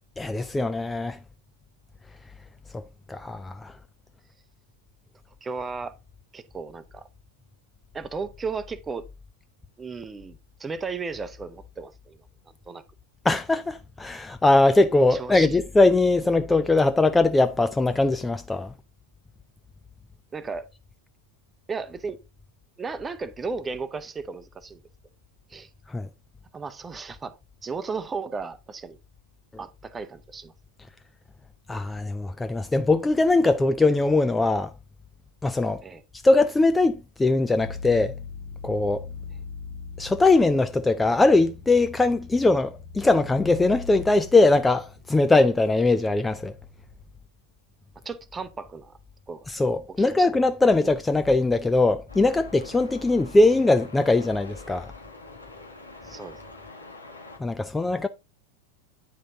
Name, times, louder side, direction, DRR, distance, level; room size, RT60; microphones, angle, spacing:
voice 1, 0.2-1.2 2.7-2.8 3.1-3.7 13.2-18.7 25.9-26.1 31.7-34.7 35.4-35.8 36.2-38.1 38.6-39.1 40.0-46.5 49.5-54.9 57.4-58.1, left 2 dB, 10° left, 0.4 m, -21 dB
voice 2, 5.4-5.9 6.3-7.1 7.9-9.1 9.8-12.2 12.5-12.8 15.1-15.5 20.3-20.7 21.7-22.2 22.8-24.8 25.5-25.7 26.5-29.0 29.6-30.5 35.8-36.0 48.0-49.0 49.3-49.5 50.2-50.3 56.0-56.4, right 4 dB, 15° right, 0.8 m, -35 dB
sound 1, 37.6-47.2, left 5 dB, 50° left, 2.2 m, -41 dB
Truck, 52.1-57.4, left 3 dB, 80° left, 1.9 m, -45 dB
9.7 x 5.2 x 3.7 m
figure-of-eight pair, 90°, 0 cm